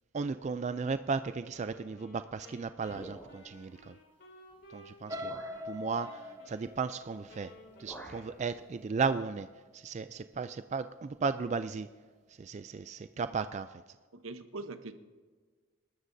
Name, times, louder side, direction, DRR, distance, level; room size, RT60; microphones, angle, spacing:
voice 1, 0.1-4.0 4.7-5.4 5.7-7.5 7.8-9.5 9.7-11.9 12.4-13.8, right 4 dB, 35° right, 11 dB, 0.3 m, -35 dB
Wind instrument woodwind instrument, 1.5-5.7 6.0-8.9, equal, 60° left, 3.8 m, -56 dB
sound 1, 2.9-3.6 4.5-4.6 5.2-5.6 7.0-7.3 7.5-8.4, right 1 dB, 10° left, 2.6 m, -49 dB
sound 2, 5.1-9.0 9.5-9.8 10.2-10.3, left 1 dB, 20° right, 0.8 m, -44 dB
voice 2, 14.1-14.9, right 2 dB, 85° right, 9 dB, 0.9 m, -42 dB
27.5 x 13.0 x 2.7 m, 1.5 s
head